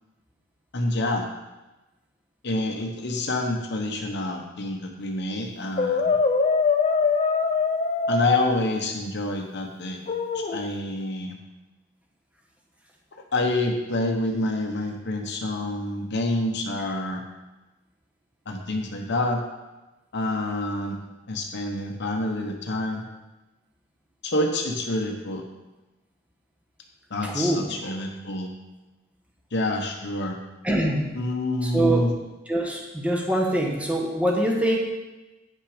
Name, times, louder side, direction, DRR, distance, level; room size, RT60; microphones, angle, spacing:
voice 1, 0.7-1.3 2.4-6.0 8.1-10.0 10.3-11.4 13.1-17.2 18.5-19.4 20.1-21.0 21.3-23.0 24.2-25.4 27.1-28.5 29.5-30.4 31.1-32.1, left 1 dB, 60° left, 3 dB, 1.0 m, -27 dB
Brass instrument, 5.8-8.5 10.1-10.6, left 5 dB, 35° left, 0.6 m, -22 dB
voice 2, 27.2-27.7 30.6-31.1 31.6-32.1 32.5-34.8, right 1 dB, 5° right, -1 dB, 1.3 m, -24 dB
9.0 x 5.9 x 5.0 m, 1.1 s
head